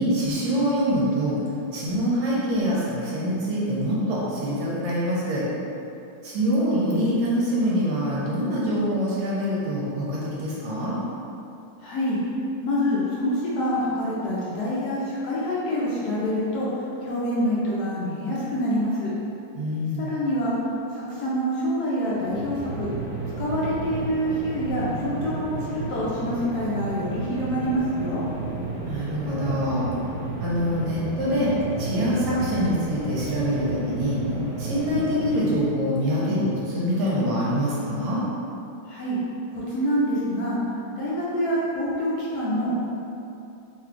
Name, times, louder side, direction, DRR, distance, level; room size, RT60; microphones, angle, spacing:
voice 1, 0.0-1.4 1.7-5.4 6.2-11.0 19.5-20.1 28.9-29.9 30.4-31.5 31.8-34.2 34.6-38.2, equal, 70° right, -7 dB, 1.2 m, -25 dB
voice 2, 11.8-12.2 12.6-16.7 17.0-19.1 20.0-20.6 21.2-22.9 23.4-28.2 38.9-39.2 39.7-40.6 41.0-42.8, equal, 70° left, -7 dB, 1.0 m, -26 dB
sound 1, 22.1-35.9, right 3 dB, 50° right, 1.2 m, -32 dB
3.2 x 2.3 x 3.6 m, 2.7 s
omnidirectional pair, 2.0 m